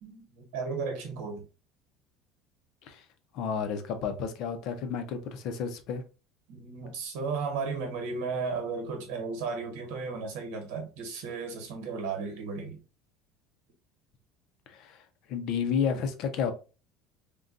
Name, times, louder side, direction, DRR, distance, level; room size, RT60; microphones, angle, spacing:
voice 1, 0.0-1.4 6.5-12.8, right 4 dB, 80° right, 1.1 m, -34 dB
voice 2, 3.3-6.0 14.7-16.5, left 7 dB, 50° left, 0.5 m, -31 dB
3.7 x 2.2 x 2.5 m
cardioid pair, 160°, 0 cm